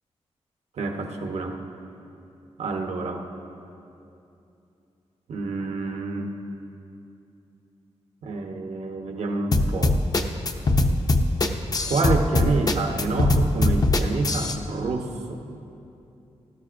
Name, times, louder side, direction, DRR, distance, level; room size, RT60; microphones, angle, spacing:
voice 1, 0.8-1.6 2.6-3.2 5.3-6.3 8.2-10.0 11.9-15.4, right 3 dB, 75° right, 3 dB, 1.0 m, -27 dB
sound 1, 9.5-14.6, left 2 dB, 35° left, 0.6 m, -21 dB
18.0 x 12.5 x 2.6 m, 2.7 s
wide cardioid pair, 155°, 11 cm